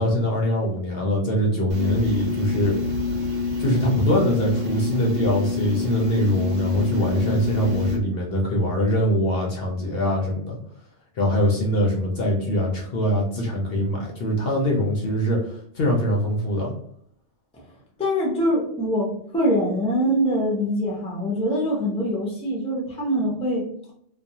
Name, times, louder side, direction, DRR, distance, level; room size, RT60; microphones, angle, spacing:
voice 1, 0.0-2.8 3.6-10.6 11.2-16.7, equal, 60° left, -1 dB, 0.7 m, -23 dB
sound 1, 1.7-8.0, left 4 dB, 85° right, 1.1 m, -27 dB
voice 2, 18.0-23.7, equal, 5° left, -3 dB, 0.5 m, -23 dB
2.4 x 2.2 x 2.7 m, 0.66 s
omnidirectional pair, 1.3 m